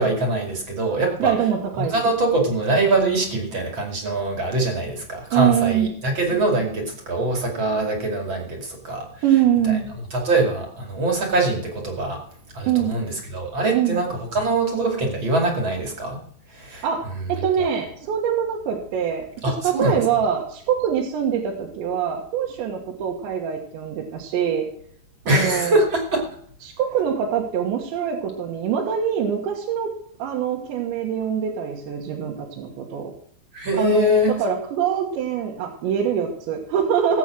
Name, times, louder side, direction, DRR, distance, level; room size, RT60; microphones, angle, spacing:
voice 1, 0.0-1.3 1.8-9.1 10.1-12.2 12.5-16.2 16.5-16.8 17.6-17.7 19.4-20.0 25.3-26.3 33.5-34.4, right 2 dB, 35° right, 1 dB, 2.3 m, -23 dB
voice 2, 1.2-2.1 5.3-5.9 9.2-9.9 12.7-12.9 13.7-14.0 16.8-17.0 17.3-24.7 25.3-25.8 26.6-29.9 30.2-33.1 33.7-34.1 34.4-37.2, right 8 dB, 75° right, -1 dB, 3.7 m, -24 dB
17.5 x 8.2 x 6.2 m, 0.62 s
omnidirectional pair, 5.4 m